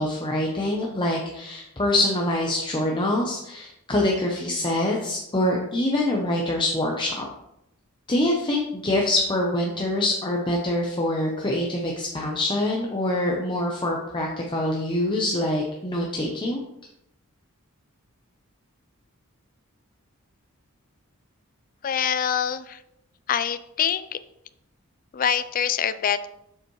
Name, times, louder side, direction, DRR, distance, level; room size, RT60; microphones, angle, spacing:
voice 1, 0.0-7.2 8.1-16.6, left 1 dB, 20° left, -1 dB, 0.8 m, -25 dB
voice 2, 21.8-22.8 23.3-24.2 25.1-26.3, left 8 dB, 40° left, 12 dB, 0.4 m, -25 dB
7.4 x 6.8 x 3.1 m, 0.82 s
head